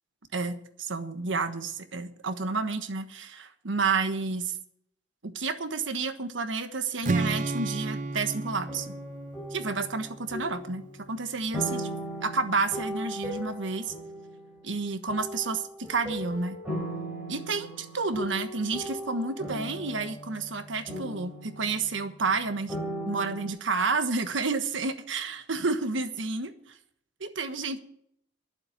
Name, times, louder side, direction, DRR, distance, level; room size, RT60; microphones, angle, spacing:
voice 1, 0.3-4.6 5.2-8.9 9.5-11.9 12.2-13.9 14.6-16.6 17.3-22.7 23.1-26.8 27.2-27.8, right 4 dB, 90° right, 9 dB, 1.3 m, -30 dB
Strum, 7.0-11.2, right 3 dB, 40° right, 0.4 m, -33 dB
sound 1, 8.7-11.0 11.5-14.7 15.1-22.4 22.7-23.5, equal, 5° right, 5.3 m, -38 dB
12.0 x 7.4 x 9.2 m, 0.69 s
head